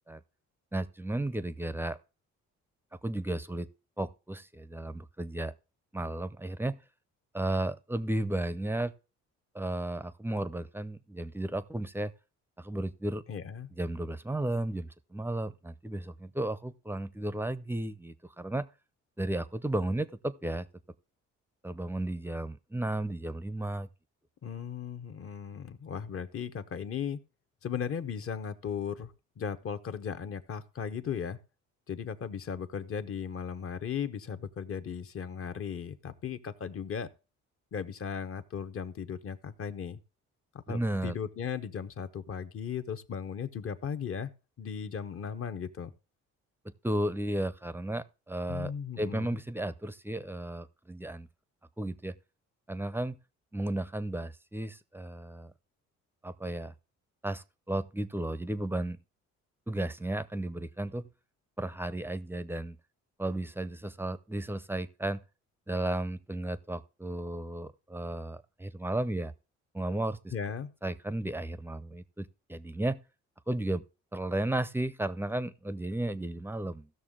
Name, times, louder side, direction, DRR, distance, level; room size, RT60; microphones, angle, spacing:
voice 1, 0.7-2.0 3.0-3.7 4.0-5.5 5.9-6.8 7.3-8.9 9.5-12.1 12.6-13.2 13.8-18.7 19.2-20.7 21.6-23.9 40.7-41.1 46.6-48.7 49.0-51.3 51.8-52.1 52.7-53.2 53.5-55.5 56.2-56.7 57.2-59.0 59.7-61.0 61.6-62.8 63.2-65.2 65.7-69.3 69.7-70.3 70.8-73.0 73.5-73.9 74.1-76.9, right 1 dB, 5° right, 0.5 m, -34 dB
voice 2, 13.3-13.7 24.4-27.2 27.6-31.4 31.9-37.1 37.7-40.0 40.7-44.3 44.6-45.9 48.5-49.4 70.3-70.7, left 7 dB, 45° left, 0.9 m, -37 dB
15.0 x 6.4 x 3.7 m
cardioid pair, 90°, 30 cm